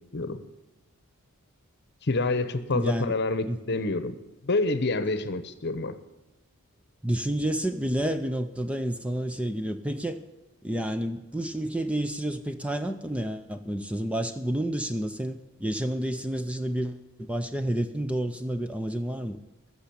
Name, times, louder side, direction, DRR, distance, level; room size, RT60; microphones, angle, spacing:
voice 1, 2.0-4.2 4.4-6.0, left 2 dB, 50° left, 12 dB, 0.9 m, -27 dB
voice 2, 2.7-3.1 3.5-3.6 7.0-10.2 10.6-19.4, right 1 dB, 5° right, 8 dB, 0.5 m, -30 dB
13.5 x 7.0 x 8.6 m, 1.0 s
head